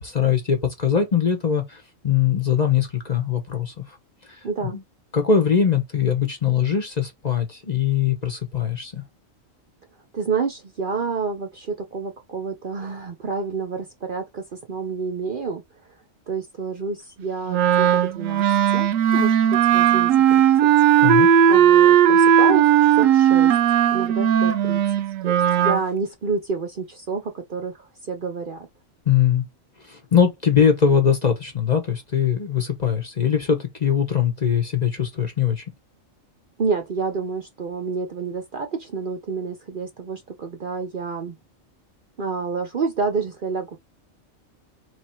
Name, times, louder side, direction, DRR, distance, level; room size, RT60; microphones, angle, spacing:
voice 1, 0.0-3.8 4.7-4.8 5.1-9.0 21.0-21.3 29.1-29.4 29.9-35.6, left 7 dB, 35° left, 0.9 m, -21 dB
voice 2, 4.4-4.8 10.1-15.6 16.3-18.4 18.7-20.7 21.5-23.6 23.9-24.8 25.2-28.7 36.6-41.3 42.2-43.8, right 5 dB, 50° right, 0.7 m, -29 dB
Wind instrument woodwind instrument, 17.5-25.8, right 9 dB, 80° right, 1.0 m, -17 dB
3.4 x 3.0 x 4.3 m
omnidirectional pair, 1.4 m